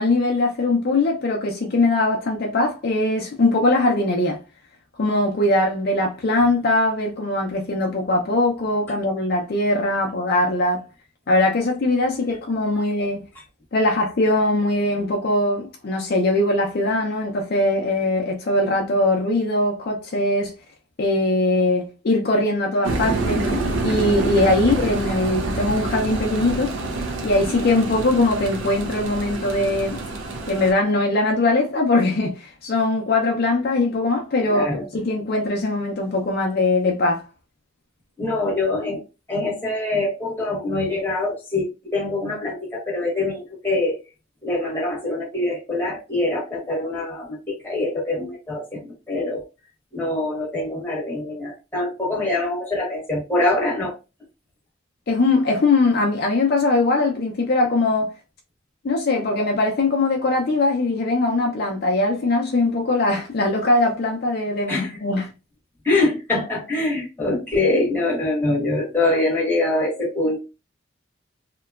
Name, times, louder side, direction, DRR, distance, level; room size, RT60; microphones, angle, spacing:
voice 1, 0.0-4.4 5.0-10.8 11.3-13.2 13.7-20.5 21.0-26.7 27.2-30.0 30.5-37.2 55.1-58.1 58.8-65.3, left 2 dB, 50° left, 0.4 m, -21 dB
sound 1, 22.8-30.7, right 2 dB, 75° right, 0.5 m, -27 dB
voice 2, 34.4-34.8 38.2-39.0 39.3-44.0 44.4-49.4 49.9-53.9 64.7-65.0 65.8-70.4, left 2 dB, 10° left, 1.0 m, -24 dB
2.9 x 2.2 x 2.3 m
head